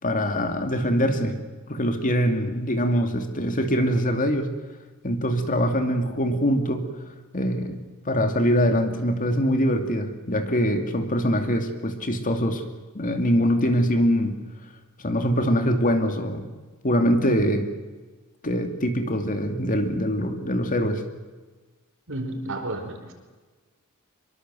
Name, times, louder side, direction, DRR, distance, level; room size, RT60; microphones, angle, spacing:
voice 1, 0.0-1.4 1.7-4.5 5.0-6.9 7.3-12.6 12.9-14.4 15.0-16.4 16.8-17.7 18.4-21.0, equal, 40° left, 6 dB, 2.5 m, -23 dB
voice 2, 22.1-23.1, right 1 dB, 65° right, 5 dB, 4.6 m, -32 dB
25.0 x 22.5 x 7.7 m, 1.3 s
head